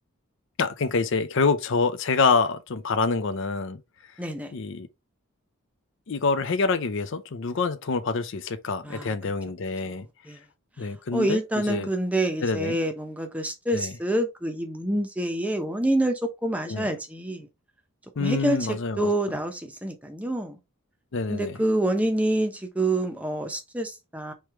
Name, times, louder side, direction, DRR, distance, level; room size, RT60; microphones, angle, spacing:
voice 1, 0.6-3.8 4.5-4.9 6.1-10.1 10.8-11.4 11.7-11.9 12.4-12.8 13.7-13.9 16.7-16.9 18.2-19.1 21.1-21.6, left 4 dB, 60° left, 0.5 m, -26 dB
voice 2, 4.2-4.5 8.8-9.1 9.8-9.9 10.2-10.4 10.8-17.5 18.2-20.6 21.3-24.3, right 1 dB, 5° right, 0.7 m, -27 dB
3.2 x 3.2 x 4.6 m
head